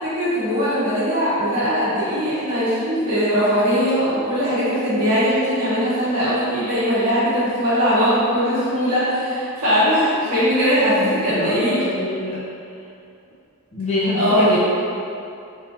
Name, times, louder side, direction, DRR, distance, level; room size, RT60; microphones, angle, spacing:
voice 1, 0.0-11.8 14.1-14.6, equal, 85° right, -12 dB, 1.4 m, -20 dB
voice 2, 10.8-12.4 13.7-14.6, left 2 dB, 30° left, -6 dB, 0.7 m, -25 dB
3.8 x 2.7 x 2.7 m, 2.6 s
head